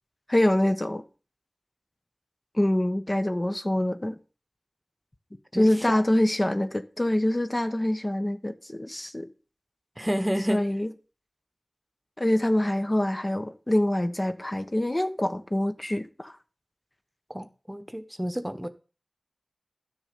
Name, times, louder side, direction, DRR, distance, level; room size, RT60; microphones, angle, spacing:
voice 1, 0.3-1.0 2.5-4.2 5.5-9.3 10.5-10.9 12.2-16.4, left 1 dB, 30° left, 1.1 m, -25 dB
voice 2, 5.5-6.0 10.0-10.6 17.3-18.7, equal, 15° right, 1.2 m, -30 dB
12.5 x 7.1 x 5.2 m
wide cardioid pair, 50°, 0 cm